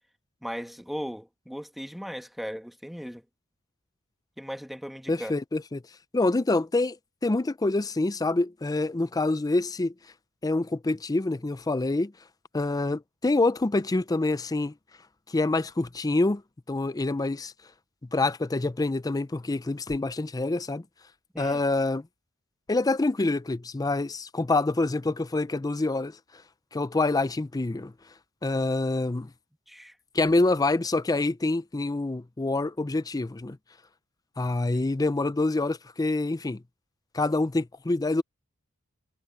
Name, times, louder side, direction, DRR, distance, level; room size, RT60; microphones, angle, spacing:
voice 1, 0.4-3.2 4.4-5.3 21.3-21.6 29.7-30.0 34.7-34.8, equal, ahead, 1.5 m, -37 dB
voice 2, 5.1-5.8 6.1-7.0 7.2-9.9 10.4-12.1 12.5-14.7 15.3-16.4 16.7-17.5 18.1-20.8 21.4-22.0 22.7-26.1 26.7-27.9 28.4-29.3 30.1-33.6 34.4-36.6 37.1-38.2, left 2 dB, 15° left, 0.4 m, -26 dB
head